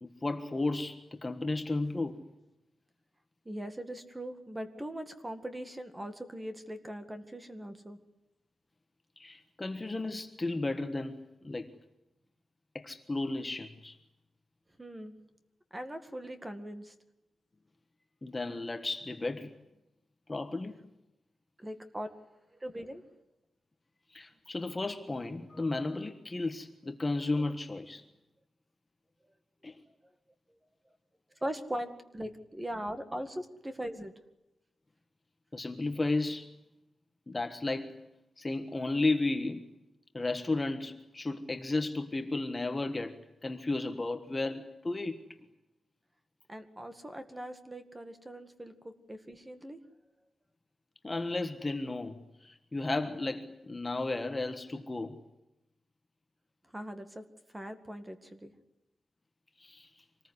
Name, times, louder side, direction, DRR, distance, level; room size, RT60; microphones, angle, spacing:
voice 1, 0.0-2.2 9.2-11.7 12.7-14.0 18.2-19.5 20.3-20.8 24.1-28.0 29.6-29.7 35.5-36.5 37.3-38.0 38.4-39.6 40.1-43.2 43.4-45.2 51.0-55.2 59.6-59.9, left 2 dB, 20° left, 1.4 m, -33 dB
voice 2, 3.5-8.0 14.8-15.2 15.7-16.9 21.6-22.1 22.6-23.0 31.4-34.1 46.5-49.8 56.7-57.2 57.5-58.5, equal, 15° right, 2.1 m, -40 dB
26.0 x 20.0 x 9.7 m
wide cardioid pair, 165°, 0 cm